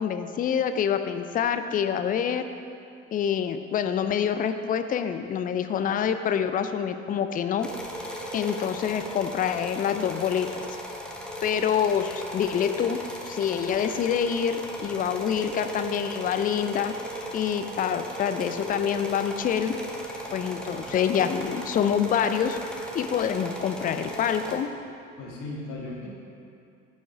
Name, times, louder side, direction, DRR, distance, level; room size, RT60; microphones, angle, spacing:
voice 1, 0.0-2.5 3.1-7.7 8.3-10.7 11.4-13.0 13.3-16.9 17.3-19.7 20.3-22.6 22.9-24.7, left 8 dB, 20° left, 9 dB, 0.5 m, -26 dB
sound 1, 7.6-24.6, equal, ahead, 1.1 m, -37 dB
voice 2, 25.2-26.1, left 2 dB, 50° left, -4 dB, 2.2 m, -37 dB
9.8 x 6.2 x 4.8 m, 2.6 s
figure-of-eight pair, 55°, 39 cm